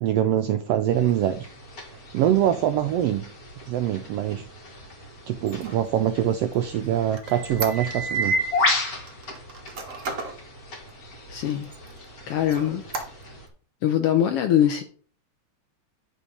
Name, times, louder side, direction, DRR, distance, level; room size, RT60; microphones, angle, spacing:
voice 1, 0.0-1.5 2.1-3.3 3.7-4.5 5.3-8.4, right 10 dB, 80° right, 8 dB, 1.4 m, -24 dB
sound 1, 0.9-13.5, left 1 dB, 40° left, 1.6 m, -33 dB
Squeak, 5.3-8.4 8.8-10.4 10.9-11.0 11.4-12.0 12.4-13.5, right 4 dB, 65° right, 0.7 m, -36 dB
voice 2, 11.3-11.7 12.3-12.8 13.8-14.8, left 10 dB, 75° left, 7 dB, 1.4 m, -22 dB
9.9 x 3.7 x 5.3 m, 0.43 s
omnidirectional pair, 3.3 m